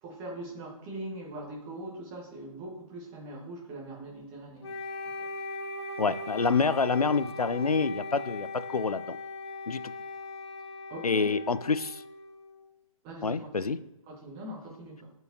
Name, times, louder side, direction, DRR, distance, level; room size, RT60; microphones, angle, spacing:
voice 1, 0.0-5.3 10.9-11.3 13.0-13.7 14.1-15.1, right 1 dB, 15° right, -2 dB, 1.3 m, -42 dB
Wind instrument woodwind instrument, 4.6-12.7, left 2 dB, 50° left, 1.1 m, -39 dB
voice 2, 6.0-9.2 9.7-9.8 11.0-12.0 13.2-13.8, left 4 dB, 85° left, 15 dB, 0.4 m, -27 dB
7.6 x 4.6 x 2.7 m, 0.95 s
figure-of-eight pair, 145°, 19 cm